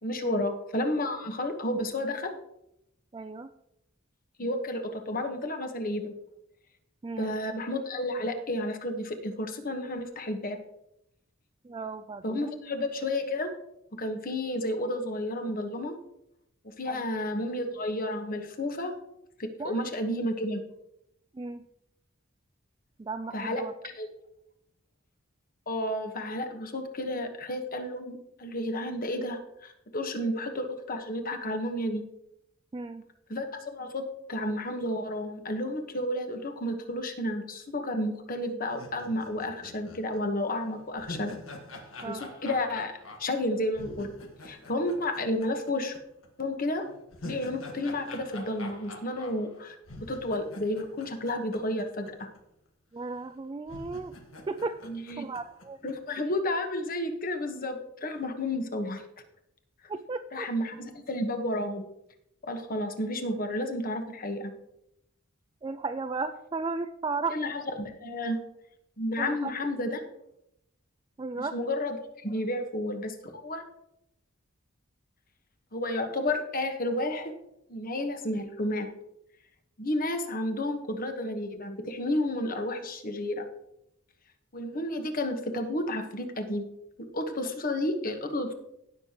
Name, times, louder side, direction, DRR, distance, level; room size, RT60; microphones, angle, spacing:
voice 1, 0.0-2.3 4.4-6.1 7.2-10.6 12.2-13.5 14.0-16.0 16.6-18.9 19.4-20.6 23.3-23.6 23.9-24.1 25.7-32.0 33.3-33.5 33.7-41.3 42.0-42.9 43.2-44.1 44.4-46.0 46.4-46.8 47.2-52.3 54.9-55.3 55.8-59.0 60.3-61.8 62.4-64.5 67.3-68.4 69.0-70.0 71.4-73.1 73.4-73.6 75.7-77.3 77.7-78.9 79.8-83.5 84.5-86.7 87.1-88.5, left 1 dB, 45° left, 5 dB, 1.3 m, -31 dB
voice 2, 3.1-3.5 7.0-7.3 11.6-12.6 16.9-17.0 19.6-19.8 21.3-21.7 23.0-23.7 32.7-33.0 42.0-42.3 52.9-54.2 54.5-54.8 55.2-55.8 59.9-60.5 65.6-67.4 69.2-69.5 71.2-71.6, right 3 dB, 20° right, 9 dB, 0.3 m, -35 dB
sound 1, 38.7-46.0 46.2-46.3 46.8-52.1 52.4-52.5 53.2-53.3 53.7-55.9, left 1 dB, 75° left, 1.6 m, -46 dB
17.0 x 6.7 x 3.0 m, 0.83 s
head